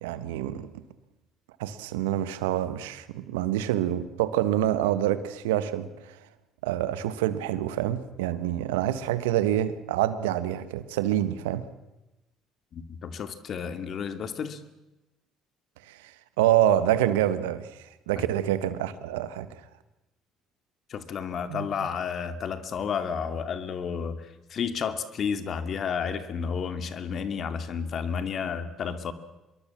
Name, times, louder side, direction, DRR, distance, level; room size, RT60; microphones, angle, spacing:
voice 1, 0.0-0.7 1.6-5.9 6.6-11.6 15.9-16.0 16.4-17.7 18.1-19.5 21.5-21.6, right 12 dB, 85° right, 1.4 m, -26 dB
voice 2, 12.7-14.6 18.2-18.3 20.9-29.1, left 6 dB, 55° left, 2.5 m, -31 dB
25.5 x 22.5 x 7.4 m
hypercardioid pair, 60°, 0 cm